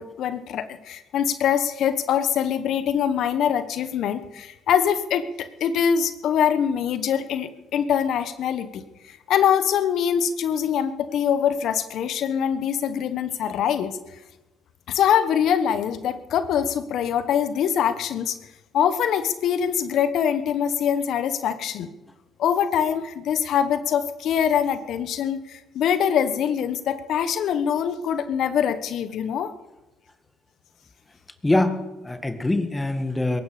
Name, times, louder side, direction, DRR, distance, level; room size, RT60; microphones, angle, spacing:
voice 1, 0.0-13.9 14.9-18.4 18.7-21.9 22.4-29.5, left 8 dB, 65° left, 12 dB, 1.1 m, -23 dB
voice 2, 31.4-33.4, left 2 dB, 15° left, 8 dB, 1.9 m, -23 dB
22.5 x 12.5 x 5.0 m, 1.1 s
hypercardioid pair, 55°, 0 cm